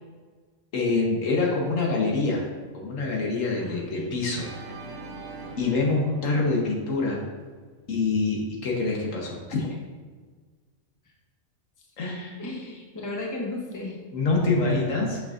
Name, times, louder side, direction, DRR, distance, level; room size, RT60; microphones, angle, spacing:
voice 1, 0.7-2.4 2.7-4.5 5.6-7.2 7.9-9.7 12.0-12.3 14.1-15.2, left 3 dB, 80° left, -2 dB, 1.5 m, -25 dB
voice 2, 3.6-4.1 12.4-14.0, left 2 dB, 15° left, -2 dB, 0.9 m, -34 dB
Organ, 4.3-7.5, right 3 dB, 70° right, 1.1 m, -42 dB
6.1 x 6.1 x 2.5 m, 1.4 s
omnidirectional pair, 1.3 m